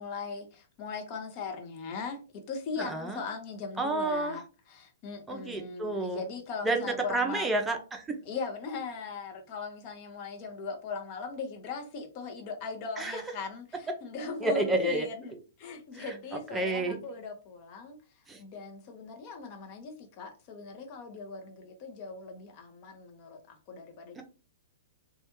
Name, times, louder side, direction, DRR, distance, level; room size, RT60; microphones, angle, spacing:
voice 1, 0.0-4.4 4.7-7.5 8.3-18.0 18.4-24.2, left 4 dB, 40° left, 0.8 m, -39 dB
voice 2, 2.8-3.2 3.8-4.4 5.3-6.2 6.6-8.2 13.0-13.2 13.9-14.0 14.4-15.1 15.9-17.0 18.3-18.4 24.2-24.3, right 2 dB, 10° right, 0.7 m, -30 dB
3.2 x 2.4 x 3.0 m
figure-of-eight pair, 110°, 0 cm